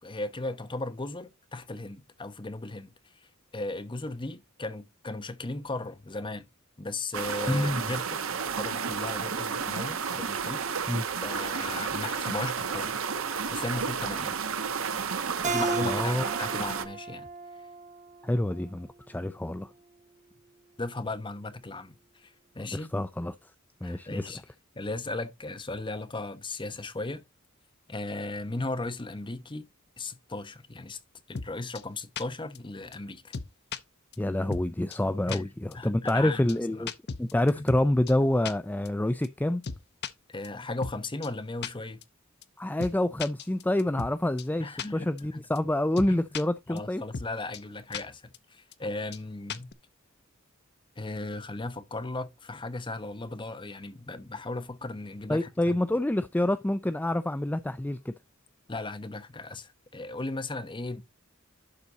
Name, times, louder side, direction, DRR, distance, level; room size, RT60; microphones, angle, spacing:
voice 1, 0.0-2.9 3.5-6.5 6.8-8.2 8.6-11.0 11.2-13.0 13.5-14.3 15.5-17.3 20.8-22.9 23.8-24.4 24.7-27.2 27.9-29.7 30.0-31.0 31.3-33.4 35.3-35.4 35.7-36.4 36.7-36.9 37.6-37.7 40.3-42.0 44.6-45.5 46.1-46.2 46.7-49.7 51.0-55.8 58.7-61.0, left 2 dB, 25° left, 1.0 m, -36 dB
sound 1, 7.1-16.8, right 6 dB, 75° right, 1.0 m, -32 dB
voice 2, 7.5-7.9 10.9-11.0 15.8-16.2 18.2-19.7 22.6-23.3 23.8-24.3 34.2-36.9 37.2-39.6 42.6-47.0 55.3-58.1, left 1 dB, 10° left, 0.4 m, -27 dB
Keyboard (musical), 15.4-18.7, right 4 dB, 35° right, 1.0 m, -34 dB
sound 2, 31.3-31.5 31.7-31.8 32.2-32.3 32.5-32.6 32.9-33.0 33.3-33.8 34.1-34.2 34.5-34.6 34.9-35.0 35.3-35.4 35.7-35.8 36.1-36.2 36.5-36.6 36.9-37.8 38.1-38.2 38.4-38.5 38.8-38.9 39.2-39.3 39.6-40.1 40.4-40.5 40.8-41.0 41.2-41.3 41.6-41.7 42.0-42.1 42.4-42.5 42.8-42.9 43.2-44.1 44.4-44.5 44.8-44.9 45.2-45.3 45.5-45.6 46.0-46.4 46.8-46.9 47.1-47.3 47.5-47.6 47.9-48.0 48.3-48.4 48.7-48.8 49.1-49.2 49.5-49.7, left 5 dB, 55° left, 0.7 m, -35 dB
11.5 x 4.1 x 4.0 m
head